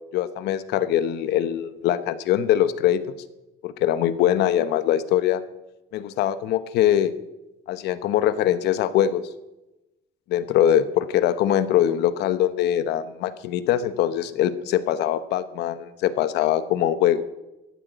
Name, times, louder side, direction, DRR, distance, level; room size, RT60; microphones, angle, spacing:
voice 1, 0.1-3.0 3.6-5.4 5.9-7.1 7.7-9.2 10.3-17.2, left 11 dB, 80° left, 13 dB, 1.0 m, -22 dB
14.5 x 10.0 x 7.9 m, 1.0 s
cardioid pair, 110°, 17 cm